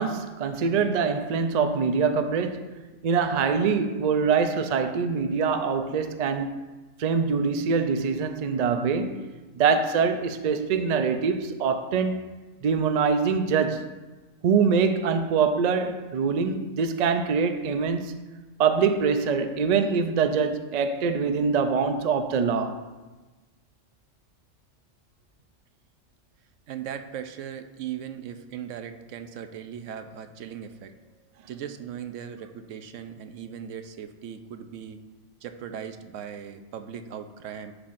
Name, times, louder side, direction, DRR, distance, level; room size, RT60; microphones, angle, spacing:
voice 1, 0.0-2.7 3.0-6.6 7.0-9.3 9.6-12.3 12.6-13.9 14.4-18.2 18.6-22.8, right 5 dB, 60° right, 0.4 m, -24 dB
voice 2, 26.7-31.0 31.5-35.0 35.4-37.7, right 8 dB, 85° right, 1.0 m, -38 dB
11.5 x 5.6 x 2.5 m
omnidirectional pair, 1.3 m